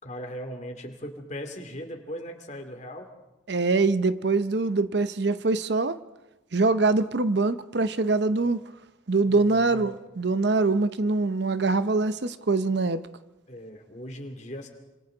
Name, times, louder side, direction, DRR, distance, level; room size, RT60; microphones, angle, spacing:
voice 1, 0.0-3.1 8.4-8.5 9.2-10.0 13.5-14.7, equal, 35° left, 2.5 m, -39 dB
voice 2, 3.5-6.0 6.5-8.6 9.1-13.0, right 3 dB, 60° right, 0.7 m, -24 dB
27.5 x 26.5 x 3.9 m
head